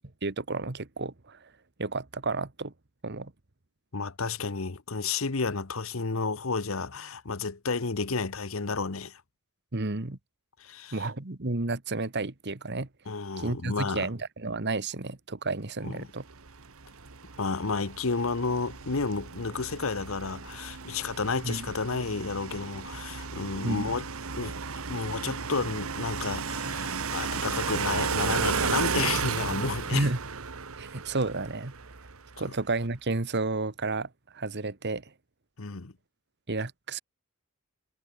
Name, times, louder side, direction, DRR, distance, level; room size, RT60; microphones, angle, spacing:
voice 1, 0.2-1.5 1.8-2.7 3.0-3.3 9.7-10.2 10.9-12.9 13.4-16.2 21.4-21.7 23.6-23.9 29.9-30.2 30.8-31.7 32.4-35.0 36.5-37.0, right 3 dB, 50° right, 1.5 m, -31 dB
voice 2, 3.9-9.2 10.6-11.1 13.1-14.1 15.8-16.0 17.4-24.1 24.4-24.6 24.9-30.1 35.6-35.9, left 4 dB, 65° left, 1.1 m, -31 dB
sound 1, 16.3-32.4, right 5 dB, 75° right, 1.4 m, -34 dB
head